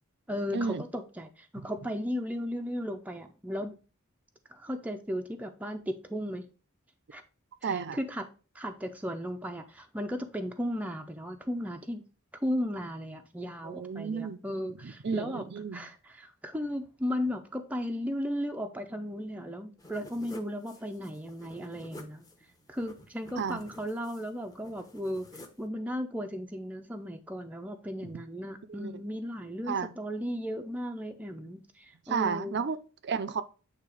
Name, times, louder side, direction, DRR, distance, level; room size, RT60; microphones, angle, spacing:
voice 1, 0.3-3.8 4.5-6.5 7.1-7.2 7.6-8.3 8.5-12.0 12.4-15.4 15.7-22.2 22.7-25.3 25.6-32.6, equal, 5° right, 0.5 m, -35 dB
voice 2, 7.6-8.0 13.6-14.4 14.8-15.8 23.4-23.6 28.1-28.2 28.7-29.0 29.7-29.9 32.1-33.4, right 5 dB, 50° right, 0.5 m, -32 dB
sound 1, 19.8-25.7, left 1 dB, 15° left, 1.0 m, -51 dB
8.4 x 2.8 x 4.8 m
head